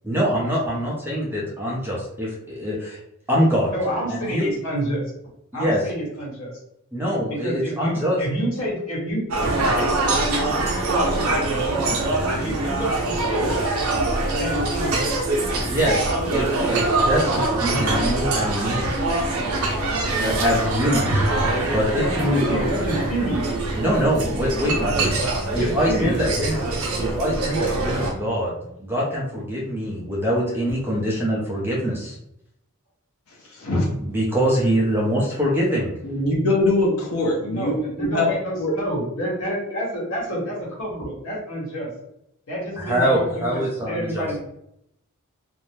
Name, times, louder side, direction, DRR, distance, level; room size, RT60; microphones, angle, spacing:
voice 1, 0.0-3.0 3.3-3.7 4.1-4.5 5.5-5.8 6.9-8.2 15.6-18.9 20.0-21.3 21.7-22.5 23.8-25.1 25.5-28.5 28.8-32.2 34.0-36.0 42.8-44.3, equal, 10° right, -4 dB, 0.6 m, -24 dB
voice 2, 3.7-5.0 5.5-6.5 7.3-12.0 12.4-13.7 14.4-15.3 21.9-23.5 24.8-25.1 25.5-26.1 29.5-29.6 37.5-41.9 42.5-44.4, right 1 dB, 65° left, -5 dB, 1.3 m, -29 dB
sound 1, 9.3-28.1, right 2 dB, 85° right, 0.6 m, -23 dB
voice 3, 36.0-37.7 38.0-38.7, left 2 dB, 85° left, -2 dB, 0.8 m, -22 dB
2.6 x 2.1 x 3.1 m, 0.78 s
head